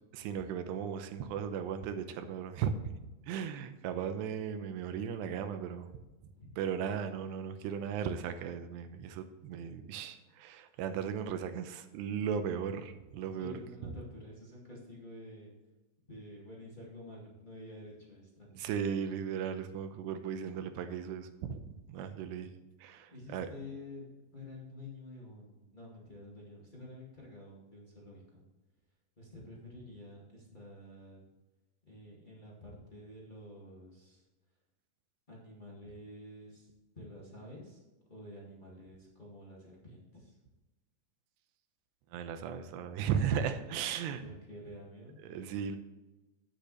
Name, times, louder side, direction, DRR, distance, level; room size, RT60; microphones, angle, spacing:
voice 1, 0.1-2.9 3.3-5.9 6.6-13.5 13.8-13.9 18.5-22.5 22.8-23.5 42.1-44.2 45.2-45.8, right 7 dB, 90° right, 8 dB, 3.0 m, -36 dB
voice 2, 13.4-15.5 16.1-18.6 23.1-24.0 24.3-28.4 29.2-31.2 31.9-34.2 35.3-36.7 36.9-37.8 38.1-40.4 44.2-45.2, left 1 dB, 25° left, -5 dB, 1.1 m, -49 dB
10.0 x 9.0 x 3.2 m, 1.1 s
omnidirectional pair, 4.8 m